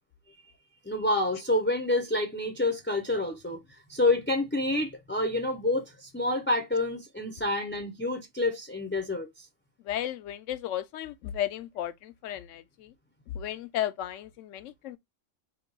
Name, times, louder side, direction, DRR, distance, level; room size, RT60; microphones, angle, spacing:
voice 1, 0.8-9.5, left 2 dB, 15° left, 0.4 m, -28 dB
voice 2, 9.8-12.9 13.3-15.0, left 11 dB, 75° left, 0.9 m, -34 dB
3.6 x 2.3 x 3.9 m
omnidirectional pair, 1.4 m